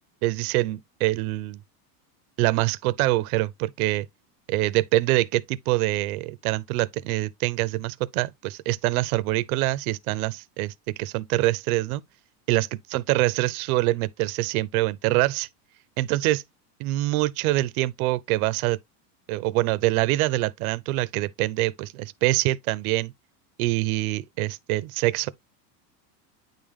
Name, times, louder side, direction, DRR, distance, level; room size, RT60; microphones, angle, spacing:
voice 1, 0.2-1.6 2.4-4.1 4.5-10.7 11.0-12.0 12.5-15.5 16.0-16.4 16.8-18.8 19.3-23.1 23.6-25.3, right 18 dB, 65° right, 0.6 m, -25 dB
9.3 x 3.6 x 3.4 m
supercardioid pair, 160°, 47 cm